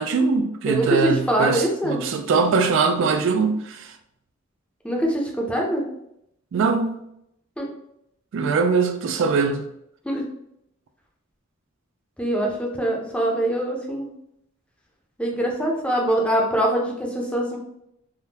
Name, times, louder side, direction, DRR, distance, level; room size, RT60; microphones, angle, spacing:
voice 1, 0.0-4.0 6.5-7.0 8.3-9.7, right 4 dB, 65° right, 6 dB, 0.3 m, -22 dB
voice 2, 0.7-2.0 4.8-5.9 7.6-7.7 10.0-10.2 12.2-14.1 15.2-17.6, right 1 dB, 5° left, -1 dB, 0.6 m, -23 dB
3.5 x 2.2 x 2.7 m, 0.77 s
head